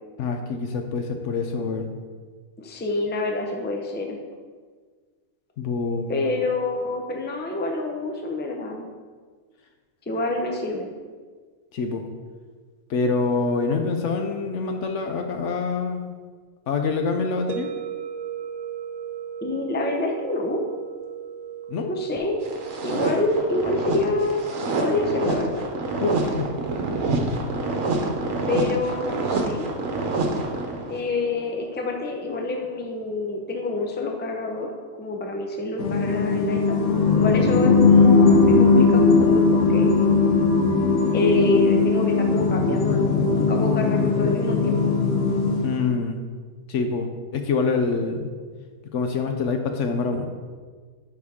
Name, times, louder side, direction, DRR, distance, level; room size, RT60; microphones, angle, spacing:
voice 1, 0.2-1.9 5.6-6.1 11.7-12.0 12.9-16.1 16.7-17.7 21.7-21.9 26.0-26.5 45.6-46.2 46.7-48.3 48.9-50.3, left 4 dB, 65° left, 5 dB, 0.9 m, -25 dB
voice 2, 2.6-4.2 6.1-8.9 10.1-10.9 19.4-20.6 21.9-22.4 22.8-24.4 24.8-25.7 28.5-29.7 30.9-34.7 35.0-36.8 37.2-40.1 41.1-44.9, left 2 dB, 10° left, 2 dB, 0.5 m, -27 dB
sound 1, 17.5-32.4, right 9 dB, 85° right, 0.3 m, -39 dB
sound 2, 22.4-31.0, right 2 dB, 70° right, 1.3 m, -27 dB
sound 3, 35.8-45.9, left 4 dB, 90° left, 1.3 m, -19 dB
10.5 x 4.6 x 3.6 m, 1.5 s
omnidirectional pair, 1.5 m